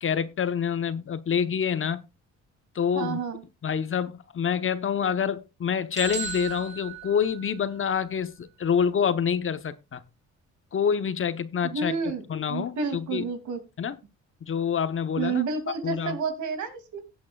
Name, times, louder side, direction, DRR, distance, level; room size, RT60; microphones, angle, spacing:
voice 1, 0.0-2.0 2.7-3.2 3.6-10.0 10.7-11.9 12.3-13.3 13.8-14.0 14.4-15.4 15.8-16.2, left 7 dB, 45° left, 0.9 m, -27 dB
voice 2, 2.9-3.4 11.6-13.6 15.2-17.0, right 5 dB, 75° right, 2.6 m, -30 dB
sound 1, 6.0-7.9, right 6 dB, 25° right, 3.0 m, -36 dB
17.5 x 8.4 x 2.3 m
cardioid pair, 90°, 30 cm